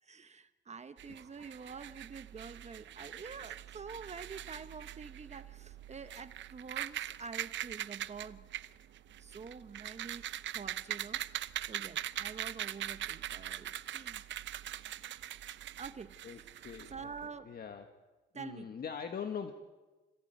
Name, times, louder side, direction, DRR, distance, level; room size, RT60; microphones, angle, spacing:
voice 1, 0.0-8.5 9.2-14.3 15.8-16.6 16.9-17.5 18.3-18.8, right 5 dB, 35° right, 11 dB, 1.0 m, -47 dB
sound 1, 1.0-17.3, right 12 dB, 70° right, 0.8 m, -42 dB
voice 2, 16.2-17.1 17.4-17.9 18.3-19.5, left 7 dB, 50° left, 6 dB, 1.6 m, -42 dB
26.0 x 17.5 x 9.3 m, 1.2 s
cardioid pair, 90°, 20 cm